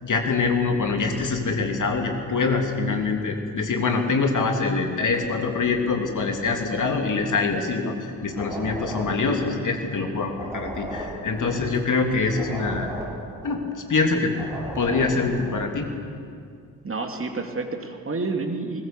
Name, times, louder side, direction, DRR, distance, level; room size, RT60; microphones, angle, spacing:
voice 1, 0.0-12.9 13.4-13.6 13.9-14.3 14.7-15.9, left 4 dB, 40° left, 3 dB, 3.1 m, -24 dB
sound 1, 8.3-10.0 10.3-14.0 14.3-15.7, right 1 dB, 5° right, 7.7 m, -36 dB
voice 2, 16.8-18.9, right 3 dB, 30° right, 4 dB, 2.5 m, -29 dB
21.0 x 20.5 x 6.9 m, 2.3 s
figure-of-eight pair, 45°, 46 cm